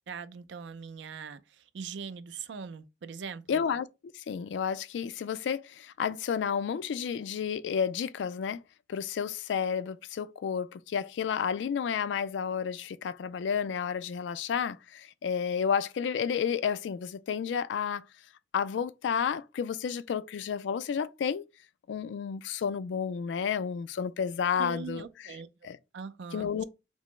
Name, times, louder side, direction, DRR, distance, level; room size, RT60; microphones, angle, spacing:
voice 1, 0.1-3.6 24.6-25.5 25.9-26.6, right 6 dB, 85° right, 0.4 m, -41 dB
voice 2, 3.5-3.9 4.1-8.6 8.9-18.0 18.5-21.5 21.9-25.0 25.6-25.8 26.3-26.6, left 7 dB, 85° left, 0.3 m, -31 dB
5.2 x 2.0 x 3.1 m
head